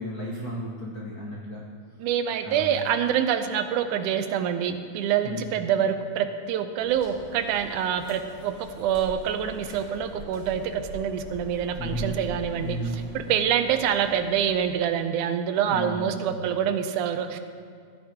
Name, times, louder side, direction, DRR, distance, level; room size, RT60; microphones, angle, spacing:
voice 1, 0.0-1.6 2.4-2.7 5.2-5.5 11.8-12.1 12.6-13.0 15.7-16.1, equal, 85° left, -4 dB, 0.8 m, -33 dB
voice 2, 2.0-12.8 13.3-17.4, right 8 dB, 80° right, 8 dB, 2.0 m, -26 dB
sound 1, 6.8-14.8, left 1 dB, 65° left, 3.7 m, -43 dB
15.5 x 9.7 x 2.9 m, 2.1 s
omnidirectional pair, 3.6 m